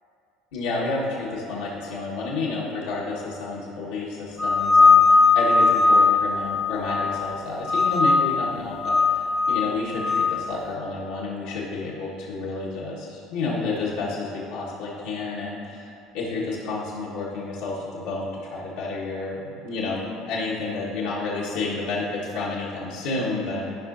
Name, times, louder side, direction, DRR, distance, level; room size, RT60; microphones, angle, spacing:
voice 1, 0.5-23.8, left 3 dB, 70° left, -7 dB, 1.4 m, -30 dB
sound 1, 4.4-7.3 7.7-8.4 8.8-10.3, left 4 dB, 10° left, 0.5 m, -19 dB
13.0 x 5.5 x 2.6 m, 2.6 s
figure-of-eight pair, 65°, 0 cm